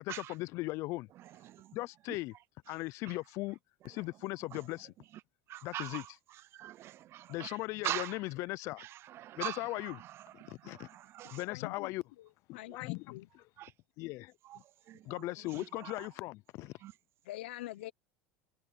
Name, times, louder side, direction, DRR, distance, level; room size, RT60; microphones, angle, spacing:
voice 1, 0.0-1.1 1.7-2.3 2.7-3.6 3.8-4.9 5.6-6.0 7.3-8.8 9.4-9.9 10.5-10.9 11.3-12.0 12.5-13.0 14.0-14.3 15.1-16.7, left 20 dB, 60° left, 0.5 m, -38 dB
voice 2, 1.1-1.8 2.1-2.8 3.0-3.2 3.8-5.2 5.5-8.3 8.8-11.4 12.7-12.8 13.6-13.7 14.4-16.1 16.8-17.0, right 13 dB, 50° right, 0.6 m, -44 dB
voice 3, 11.4-11.9 12.2-13.3 17.3-17.9, left 17 dB, 85° left, 0.9 m, -45 dB
supercardioid pair, 100°, 6 cm